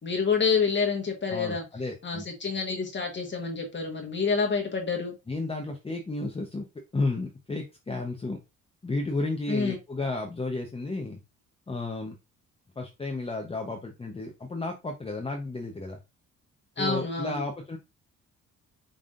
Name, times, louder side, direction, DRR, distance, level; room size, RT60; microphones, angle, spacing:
voice 1, 0.0-1.6 2.0-5.1 9.5-9.8 16.8-17.4, left 5 dB, 40° left, 1.3 m, -28 dB
voice 2, 1.3-2.3 5.3-6.7 6.9-8.4 8.8-11.2 11.7-12.2 12.8-16.0 16.8-17.8, left 2 dB, 20° left, 0.8 m, -32 dB
5.7 x 3.5 x 2.5 m
cardioid pair, 90°, 30 cm